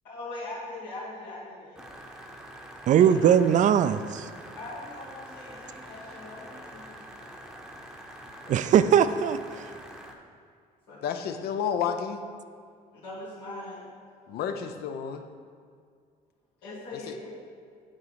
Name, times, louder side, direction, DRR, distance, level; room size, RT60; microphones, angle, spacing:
voice 1, 0.0-1.8 2.9-3.7 4.5-7.6 8.4-8.6 10.9-11.0 11.3-11.4 12.9-13.9 16.6-17.3, left 2 dB, 85° left, -10 dB, 2.1 m, -41 dB
sound 1, 1.8-10.1, equal, 5° right, 0.8 m, -45 dB
voice 2, 2.9-4.3 8.5-9.4, right 9 dB, 50° right, 13 dB, 0.4 m, -20 dB
voice 3, 11.0-12.2 14.3-15.2 17.1-17.2, left 7 dB, 70° left, 7 dB, 0.7 m, -30 dB
8.5 x 3.8 x 6.2 m, 2.1 s
cardioid pair, 110°, 17 cm